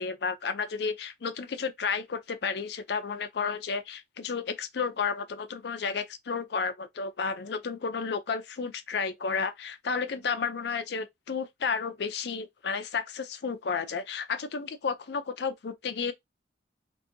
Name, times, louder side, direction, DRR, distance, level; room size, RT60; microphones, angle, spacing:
voice 1, 0.0-16.1, left 5 dB, 60° left, 0.4 m, -32 dB
2.6 x 2.6 x 2.6 m
head